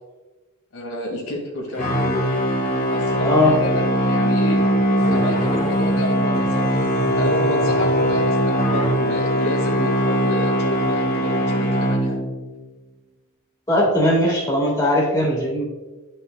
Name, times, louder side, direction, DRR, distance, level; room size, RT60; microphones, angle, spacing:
voice 1, 0.7-2.3 2.8-4.6 5.1-6.9 7.2-12.2, left 1 dB, 75° left, -1 dB, 2.0 m, -29 dB
sound 1, 1.7-12.5, equal, 40° left, 1.6 m, -21 dB
sound 2, 5.0-8.5, right 1 dB, 10° right, 1.2 m, -32 dB
voice 2, 13.7-15.6, left 1 dB, 15° left, -3 dB, 1.6 m, -19 dB
11.0 x 5.4 x 2.2 m, 1.2 s
head